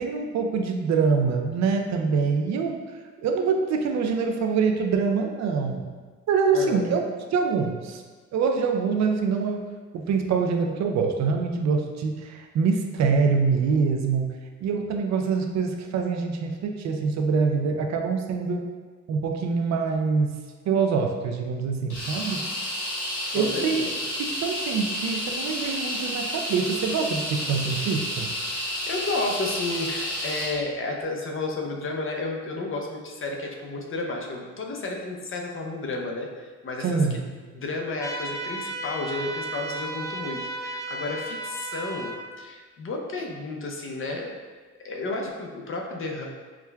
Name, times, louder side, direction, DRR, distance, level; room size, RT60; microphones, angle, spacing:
voice 1, 0.0-2.8 3.2-5.9 6.3-7.1 7.3-8.0 8.3-9.6 9.9-14.2 14.6-18.6 19.1-20.3 20.7-22.4 23.3-23.9 24.2-28.3 36.8-37.2, right 5 dB, 65° right, 4 dB, 0.5 m, -25 dB
voice 2, 6.5-6.8 23.3-23.9 28.9-37.2 37.5-44.3 44.8-46.3, left 2 dB, 45° left, 1 dB, 0.7 m, -32 dB
sound 1, 21.9-30.6, left 1 dB, 70° left, 1.5 m, -31 dB
sound 2, 38.0-42.2, right 1 dB, 10° left, 0.4 m, -34 dB
5.9 x 2.2 x 2.2 m, 1.4 s
cardioid pair, 90°, 30 cm